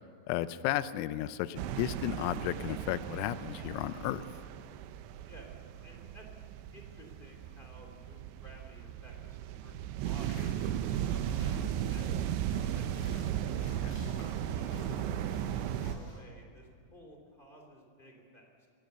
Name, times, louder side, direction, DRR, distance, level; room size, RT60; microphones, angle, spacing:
voice 1, 0.3-4.3 13.8-14.0, left 13 dB, 90° left, 14 dB, 3.4 m, -34 dB
sound 1, 1.6-16.0, right 10 dB, 80° right, 2.7 m, -36 dB
voice 2, 5.8-6.3 6.7-10.5 10.9-13.3 14.5-18.7, equal, 15° left, 1 dB, 1.8 m, -55 dB
sound 2, 10.0-16.2, equal, 60° left, 9.0 m, -49 dB
22.5 x 17.5 x 6.8 m, 2.4 s
omnidirectional pair, 5.9 m